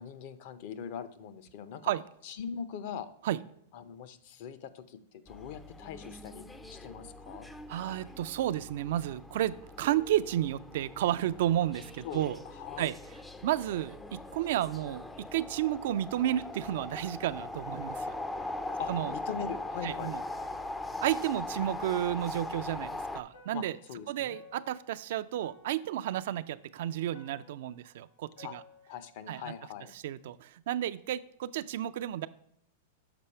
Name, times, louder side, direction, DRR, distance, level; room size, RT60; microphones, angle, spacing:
voice 1, 0.0-1.9 2.2-3.1 3.7-7.5 12.0-12.9 18.8-20.1 23.5-24.4 28.4-28.5 28.9-29.9, left 7 dB, 55° left, 13 dB, 0.6 m, -42 dB
sound 1, 5.3-23.2, left 2 dB, 10° left, 0.4 m, -41 dB
voice 2, 7.7-12.4 12.8-12.9 13.4-18.1 18.9-19.1 19.8-20.2 21.0-23.8 24.1-28.6 29.3-29.5 29.9-32.3, right 12 dB, 65° right, 13 dB, 0.3 m, -32 dB
sound 2, 16.9-21.3 21.6-29.2, left 2 dB, 70° left, 1.7 m, -59 dB
6.9 x 4.7 x 4.3 m, 0.70 s
hypercardioid pair, 135°, 0 cm